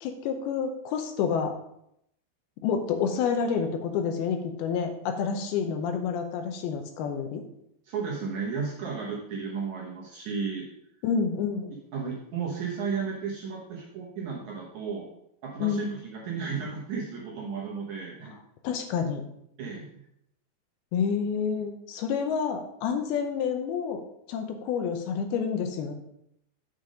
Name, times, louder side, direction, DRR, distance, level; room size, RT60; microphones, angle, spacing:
voice 1, 0.0-1.5 2.6-7.4 11.0-11.7 15.6-15.9 18.6-19.2 20.9-24.0 24.3-25.9, left 6 dB, 75° left, 5 dB, 2.6 m, -28 dB
voice 2, 7.9-10.7 11.9-15.1 15.4-18.3 19.6-20.0, right 5 dB, 65° right, -3 dB, 2.0 m, -34 dB
8.1 x 5.2 x 5.0 m, 0.77 s
omnidirectional pair, 4.6 m